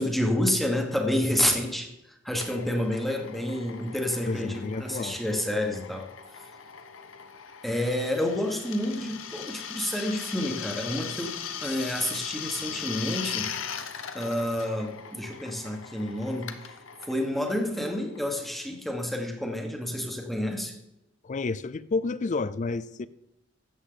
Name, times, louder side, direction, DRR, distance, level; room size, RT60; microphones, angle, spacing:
voice 1, 0.0-6.1 7.6-11.3 11.6-13.5 14.1-16.7 17.0-20.8, left 1 dB, ahead, 1.3 m, -29 dB
Drill, 2.4-18.7, left 8 dB, 80° left, 0.8 m, -39 dB
voice 2, 4.3-5.2 21.2-23.1, left 3 dB, 40° left, 0.4 m, -30 dB
13.0 x 8.2 x 3.9 m
head